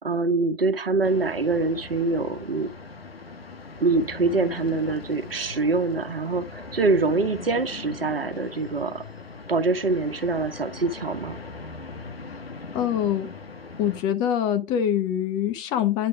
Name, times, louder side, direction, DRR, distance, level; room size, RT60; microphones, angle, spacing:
voice 1, 0.0-2.7 3.8-9.0 9.5-11.4, right 3 dB, 75° right, 1.3 m, -24 dB
sound 1, 1.0-14.0, left 3 dB, 85° left, 1.3 m, -40 dB
voice 2, 12.7-13.3 13.8-16.1, left 10 dB, 15° left, 0.7 m, -24 dB
9.7 x 3.3 x 5.0 m
figure-of-eight pair, 135°, 30 cm